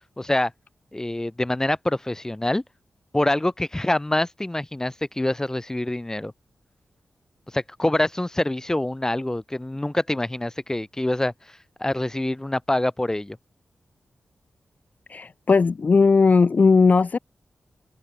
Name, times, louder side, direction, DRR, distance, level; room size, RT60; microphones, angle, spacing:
voice 1, 0.2-0.5 0.9-2.6 3.1-6.3 7.5-11.3 11.8-13.4, left 1 dB, 15° left, 2.4 m, -25 dB
voice 2, 15.1-17.2, left 4 dB, 50° left, 0.8 m, -17 dB
open air
cardioid pair, 60°, 3 cm